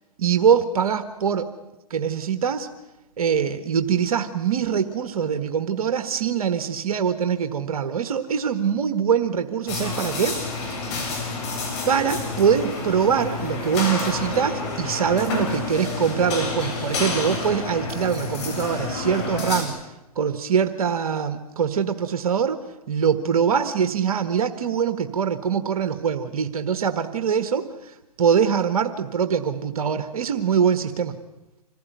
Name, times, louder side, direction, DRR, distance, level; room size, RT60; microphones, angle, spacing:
voice 1, 0.2-1.5 1.9-2.7 3.2-11.0 11.9-22.6 22.9-31.2, right 7 dB, 65° right, 8 dB, 1.5 m, -23 dB
sound 1, 9.7-19.6, left 3 dB, 45° left, 7.9 m, -29 dB
26.0 x 16.0 x 9.3 m, 0.98 s
hypercardioid pair, 125°, 20 cm